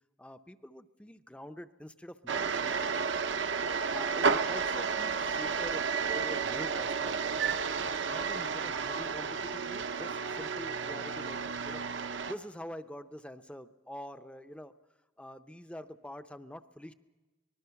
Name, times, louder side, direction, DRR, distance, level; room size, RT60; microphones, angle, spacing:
voice 1, 0.2-2.8 3.8-7.2 7.8-11.4 11.6-11.8 12.3-14.7 15.2-16.9, equal, 5° left, 10 dB, 0.6 m, -45 dB
sound 1, 2.3-12.3, right 5 dB, 65° right, 0.7 m, -32 dB
24.5 x 20.5 x 5.8 m, 1.2 s
head